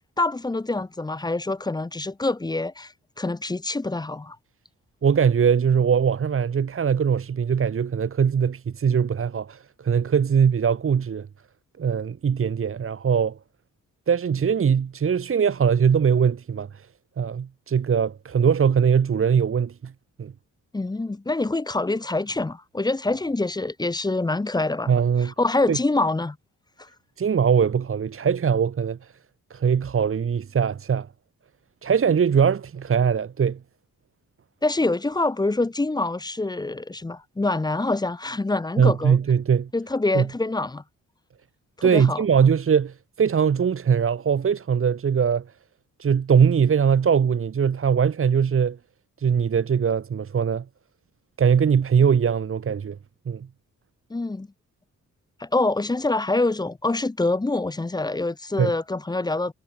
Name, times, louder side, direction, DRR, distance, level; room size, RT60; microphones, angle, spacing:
voice 1, 0.2-2.9 3.2-4.4 20.7-24.9 25.2-26.4 26.8-26.9 34.6-39.2 39.7-40.8 41.8-42.2 54.1-54.5 55.4-59.5, left 2 dB, 15° left, 0.9 m, -25 dB
voice 2, 5.0-11.3 11.8-13.4 14.1-16.9 17.2-19.9 20.2-20.3 24.9-25.3 25.7-25.8 27.2-29.0 29.5-31.1 31.8-33.6 38.8-39.7 40.1-40.3 41.8-45.4 46.0-48.8 49.2-50.6 51.4-53.0 53.3-53.5 58.6-58.7, right 7 dB, 45° right, 2.2 m, -21 dB
cardioid pair, 130°, 31 cm